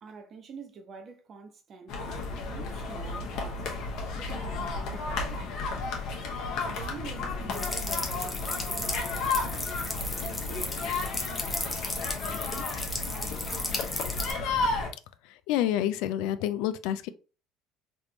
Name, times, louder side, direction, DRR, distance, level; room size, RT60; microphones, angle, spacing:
voice 1, 0.0-3.7 4.1-5.4 6.6-9.7 10.2-12.7 13.1-14.1, right 5 dB, 45° right, 0.8 m, -47 dB
sound 1, 1.9-14.9, left 3 dB, 60° left, 0.9 m, -33 dB
sound 2, 7.5-14.3, left 2 dB, 15° left, 0.7 m, -35 dB
voice 2, 15.3-17.1, left 11 dB, 80° left, 0.3 m, -28 dB
3.4 x 2.5 x 2.8 m
supercardioid pair, 110°, 0 cm